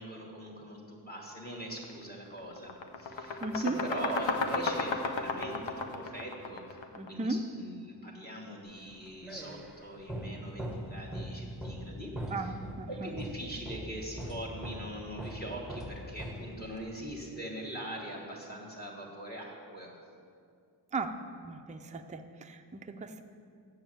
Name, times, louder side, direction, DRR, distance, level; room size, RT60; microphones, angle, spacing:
voice 1, 0.0-2.7 3.0-6.8 7.1-12.5 12.9-19.9, right 1 dB, 20° left, -2 dB, 1.5 m, -42 dB
sound 1, 1.7-1.9 2.3-7.2, left 4 dB, 80° left, 0.8 m, -34 dB
voice 2, 3.4-3.8 7.0-7.4 12.3-13.1 20.9-21.1 21.4-23.2, right 3 dB, 15° right, 6 dB, 0.4 m, -36 dB
sound 2, 8.8-16.9, equal, ahead, 0.8 m, -41 dB
7.8 x 7.0 x 7.4 m, 2.3 s
wide cardioid pair, 135°, 44 cm